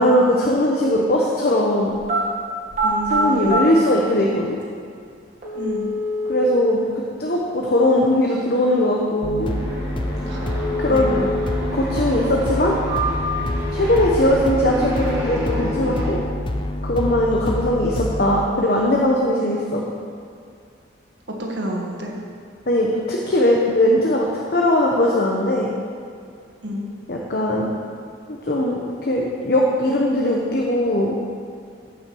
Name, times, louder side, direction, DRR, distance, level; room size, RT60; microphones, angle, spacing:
voice 1, 0.0-1.9 3.1-4.6 6.3-6.8 7.2-9.5 10.8-11.2 11.7-12.7 13.7-16.2 16.8-19.8 22.7-25.7 27.1-27.7 28.3-31.1, left 1 dB, 55° left, -2 dB, 1.0 m, -19 dB
sound 1, 1.9-2.2 2.7-3.6 4.6-4.7 5.4-6.4 10.4-11.4 11.8-11.9 12.5-13.4 13.8-14.6 14.8-15.4, right 1 dB, 40° right, 2.3 m, -25 dB
voice 2, 2.8-3.7 5.5-5.9 10.2-11.3 17.2-17.6 19.3-19.9 21.3-22.1 26.6-26.9, right 1 dB, 70° right, -1 dB, 1.7 m, -30 dB
sound 2, 9.2-18.5, left 1 dB, 25° left, 0.5 m, -27 dB
sound 3, 9.4-16.1, equal, 15° right, 2.9 m, -31 dB
14.5 x 6.1 x 4.7 m, 2.3 s
head